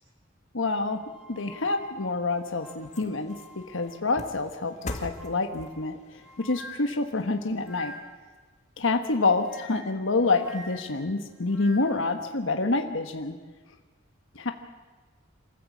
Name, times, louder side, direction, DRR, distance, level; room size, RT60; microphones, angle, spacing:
voice 1, 0.5-1.0 1.3-7.9 8.8-13.4 14.3-14.5, left 3 dB, 70° left, 6 dB, 1.3 m, -27 dB
sound 1, 0.9-4.1 4.6-8.3 9.1-12.1, equal, 5° right, 3.8 m, -48 dB
sound 2, 1.9-8.4 8.8-8.9, left 1 dB, 35° left, 2.2 m, -44 dB
27.0 x 14.5 x 8.5 m, 1.3 s
head